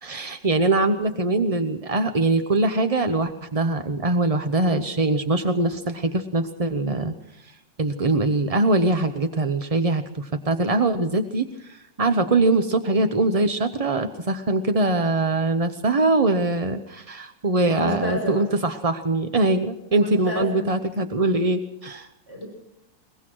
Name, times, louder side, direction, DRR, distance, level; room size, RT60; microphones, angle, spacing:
voice 1, 0.0-7.1 7.8-22.1, right 2 dB, 35° right, 8 dB, 0.5 m, -22 dB
voice 2, 17.7-18.5 19.9-20.7 22.3-22.5, left 1 dB, 10° right, -1 dB, 7.7 m, -31 dB
22.0 x 20.5 x 6.2 m, 0.82 s
omnidirectional pair, 1.9 m